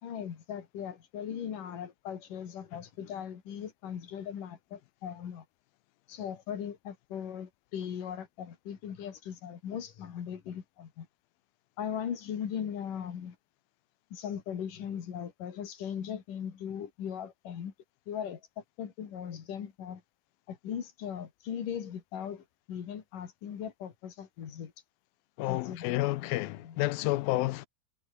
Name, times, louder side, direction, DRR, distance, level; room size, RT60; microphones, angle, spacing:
voice 1, 0.0-5.5 6.1-11.1 11.8-13.4 14.1-17.7 18.1-20.0 20.5-24.7 25.5-26.8, left 8 dB, 60° left, 4.1 m, -39 dB
voice 2, 25.4-27.7, left 18 dB, 85° left, 2.4 m, -30 dB
omnidirectional pair, 4.4 m